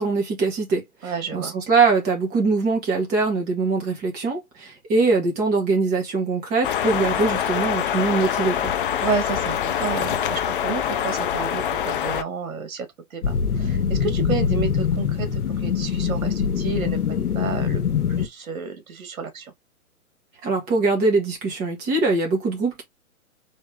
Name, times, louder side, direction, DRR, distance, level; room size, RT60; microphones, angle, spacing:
voice 1, 0.0-8.7 20.4-22.8, right 3 dB, 20° right, 1.9 m, -22 dB
voice 2, 1.0-1.5 9.0-17.8 18.1-19.5, right 5 dB, 65° right, 2.2 m, -31 dB
sound 1, 6.6-12.2, left 9 dB, 40° left, 0.6 m, -25 dB
sound 2, 13.2-18.3, left 7 dB, 85° left, 1.0 m, -23 dB
4.1 x 3.3 x 3.5 m
hypercardioid pair, 135°, 43 cm